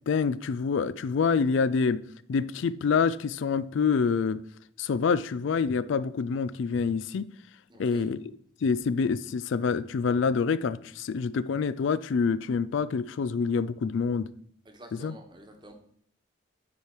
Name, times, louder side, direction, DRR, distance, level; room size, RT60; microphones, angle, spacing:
voice 1, 0.1-4.4 4.8-7.3 7.8-8.2 8.6-14.3 14.9-15.2, left 5 dB, 70° left, 0.3 m, -26 dB
voice 2, 7.7-8.1 14.6-15.7, right 1 dB, 20° right, 1.2 m, -49 dB
9.9 x 4.8 x 4.5 m
head